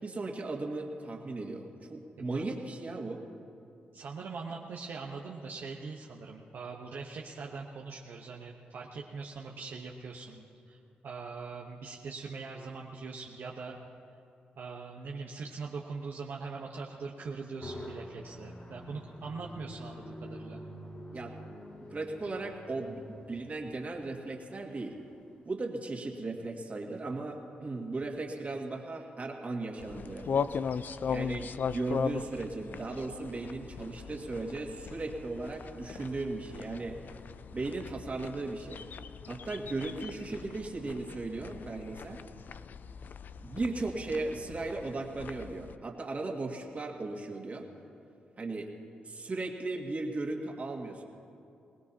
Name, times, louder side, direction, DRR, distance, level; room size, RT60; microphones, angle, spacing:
voice 1, 0.0-3.2 21.1-21.3 21.9-25.0 25.4-37.0 37.5-38.8 39.3-42.2 43.4-47.7 48.4-48.7 49.0-51.0, right 2 dB, 40° right, 1 dB, 2.1 m, -37 dB
voice 2, 2.2-2.5 3.9-13.8 14.6-20.6, right 4 dB, 70° right, -1 dB, 1.0 m, -42 dB
sound 1, 17.6-25.3, left 1 dB, 40° left, 2.2 m, -47 dB
sound 2, 29.8-45.8, left 6 dB, 60° left, 0.4 m, -39 dB
22.5 x 19.0 x 2.9 m, 2.7 s
supercardioid pair, 50°, 4 cm